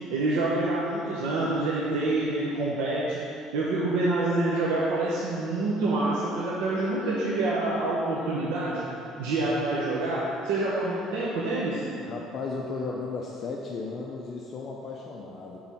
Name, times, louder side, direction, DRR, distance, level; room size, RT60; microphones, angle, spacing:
voice 1, 0.1-3.2 3.5-8.9 9.2-11.8, right 2 dB, 90° right, -6 dB, 0.9 m, -27 dB
voice 2, 12.0-15.6, left 4 dB, 40° left, -1 dB, 0.6 m, -35 dB
6.4 x 3.9 x 5.7 m, 2.6 s
cardioid pair, 120°, 0 cm